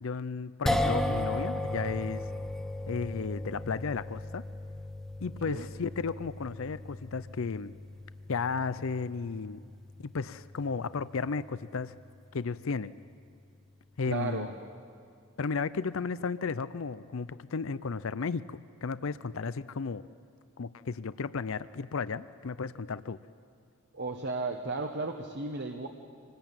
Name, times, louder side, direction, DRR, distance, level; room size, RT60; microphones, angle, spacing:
voice 1, 0.0-2.3 2.9-4.4 5.2-7.7 8.3-9.6 10.0-11.9 12.3-12.9 14.0-14.5 15.4-20.1 20.6-23.2, left 5 dB, 65° left, 15 dB, 0.5 m, -34 dB
sound 1, 0.7-13.0, left 1 dB, ahead, 0.9 m, -36 dB
voice 2, 14.1-14.5 23.9-25.9, right 3 dB, 55° right, 4 dB, 1.3 m, -34 dB
26.0 x 20.0 x 8.9 m, 2.3 s
head